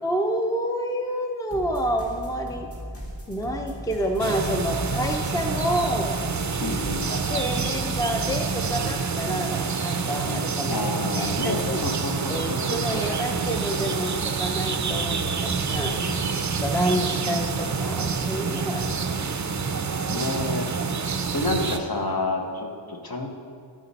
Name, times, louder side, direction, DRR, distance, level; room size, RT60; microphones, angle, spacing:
voice 1, 0.0-2.7 3.3-6.2 7.1-10.9 11.1-11.8 12.3-16.0 16.6-18.8 21.0-21.2, equal, 10° left, 3 dB, 0.6 m, -28 dB
sound 1, 1.5-9.1, equal, 30° left, 2.0 m, -38 dB
sound 2, 4.2-21.8, right 5 dB, 40° right, 0.5 m, -27 dB
voice 2, 6.6-7.2 9.3-9.6 10.2-13.0 15.8-16.4 18.6-19.3 20.1-20.7 21.0-23.3, left 2 dB, 50° left, 2 dB, 1.1 m, -31 dB
13.0 x 5.1 x 4.1 m, 2.2 s
wide cardioid pair, 70°, 46 cm